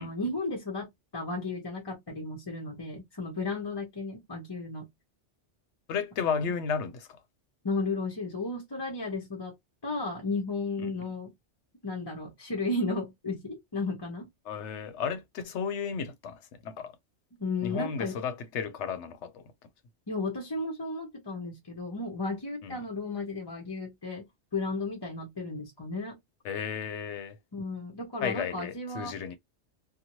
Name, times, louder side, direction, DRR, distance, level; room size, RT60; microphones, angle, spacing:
voice 1, 0.0-4.9 6.2-6.4 7.6-9.5 9.8-11.3 11.8-14.3 17.4-18.2 20.1-26.2 27.5-29.1, left 3 dB, 25° left, 0.7 m, -34 dB
voice 2, 5.9-7.1 10.8-10.9 14.5-16.9 17.6-19.4 22.6-22.8 26.4-27.4 28.2-29.4, left 6 dB, 80° left, 0.9 m, -33 dB
2.7 x 2.3 x 2.9 m
omnidirectional pair, 1.2 m